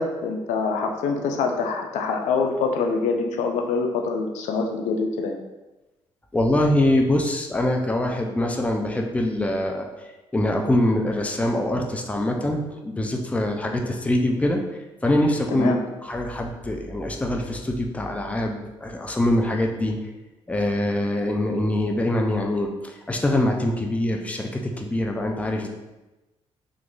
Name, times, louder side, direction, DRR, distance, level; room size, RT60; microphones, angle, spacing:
voice 1, 0.0-5.4 15.5-15.8, left 4 dB, 85° left, 3 dB, 0.4 m, -25 dB
voice 2, 6.3-9.9 10.3-14.6 15.0-15.7 16.0-20.0 20.5-25.7, left 1 dB, 10° left, 2 dB, 0.5 m, -24 dB
3.0 x 2.4 x 3.6 m, 1.1 s
cardioid pair, 75°, 12 cm